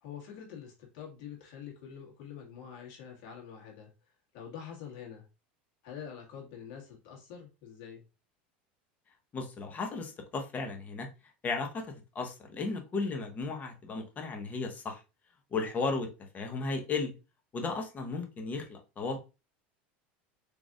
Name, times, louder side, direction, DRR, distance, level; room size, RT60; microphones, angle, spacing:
voice 1, 0.0-3.9 4.3-5.3 5.8-8.0, left 8 dB, 65° left, 1.7 m, -46 dB
voice 2, 9.3-11.1 11.4-15.0 15.5-16.1 16.3-17.1 17.5-19.2, left 3 dB, 30° left, 1.0 m, -35 dB
3.9 x 3.3 x 2.4 m
supercardioid pair, 110°, 6 cm